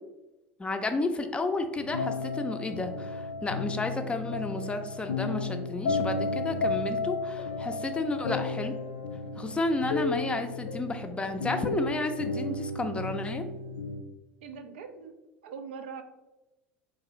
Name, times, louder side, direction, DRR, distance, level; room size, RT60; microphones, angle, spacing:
voice 1, 0.6-8.7 9.4-13.4, left 2 dB, 20° left, 7 dB, 0.4 m, -32 dB
sound 1, 1.8-14.0, left 3 dB, 85° left, 0.4 m, -33 dB
voice 2, 14.4-15.1 15.4-16.0, right 6 dB, 80° right, 7 dB, 0.4 m, -41 dB
3.8 x 2.5 x 3.0 m, 1.0 s
hypercardioid pair, 80°, 6 cm